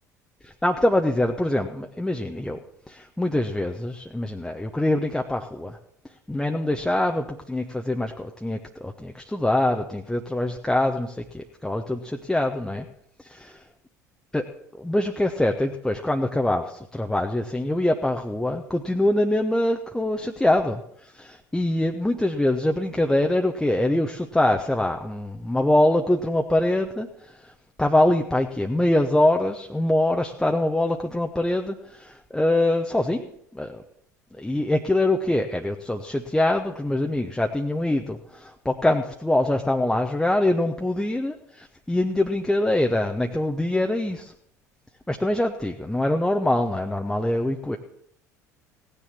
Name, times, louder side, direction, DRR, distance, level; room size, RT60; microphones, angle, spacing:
voice 1, 0.6-2.6 2.9-5.8 6.3-12.8 13.2-13.5 14.3-14.5 14.8-27.5 27.8-33.3 33.5-33.8 34.4-44.3 45.1-47.8, left 1 dB, 5° left, 3 dB, 1.0 m, -24 dB
17.0 x 10.0 x 6.0 m, 0.72 s
figure-of-eight pair, 65°, 9 cm